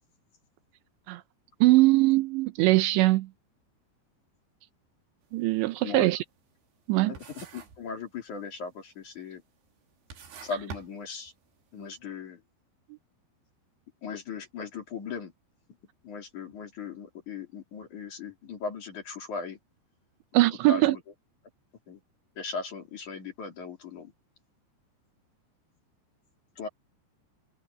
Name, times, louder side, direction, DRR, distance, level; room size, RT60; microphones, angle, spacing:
voice 1, 1.6-3.3 5.3-6.2 6.9-7.1 20.3-21.0, right 19 dB, 80° right, 2.9 m, -21 dB
sound 1, 5.2-5.5 5.8-6.9 7.1-7.9 8.2-8.7 9.4-9.5 9.9-11.6, right 5 dB, 60° right, 5.1 m, -45 dB
voice 2, 5.8-6.1 7.0-9.4 10.4-11.3 11.7-12.4 14.0-15.3 16.0-19.6 20.7-21.0 21.9-22.0 22.4-24.1 26.6-26.7, left 5 dB, 45° left, 4.3 m, -38 dB
omnidirectional pair, 5.3 m